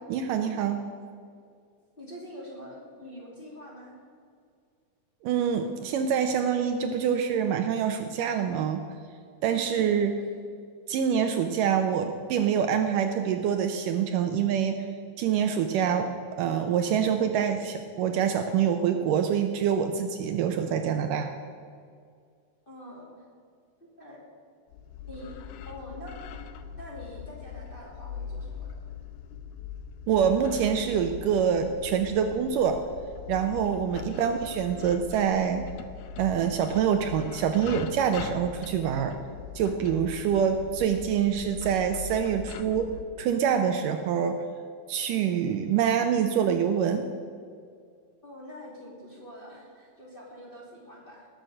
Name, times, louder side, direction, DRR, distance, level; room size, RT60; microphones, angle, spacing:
voice 1, 0.1-0.8 5.2-8.8 9.4-10.1 10.9-14.8 15.2-16.1 16.4-21.3 30.1-32.8 33.3-35.7 36.2-39.2 39.6-42.9 43.2-44.4 44.9-47.1, right 8 dB, 75° right, 6 dB, 2.2 m, -25 dB
voice 2, 2.0-4.0 9.5-9.8 22.7-23.1 24.0-24.2 25.0-25.3 25.6-26.5 26.7-28.9 33.9-34.0 48.2-51.3, equal, 15° left, -4 dB, 2.6 m, -45 dB
sound 1, 24.7-43.0, left 7 dB, 85° left, 2.4 m, -41 dB
19.5 x 8.0 x 6.4 m, 2.2 s
omnidirectional pair, 4.1 m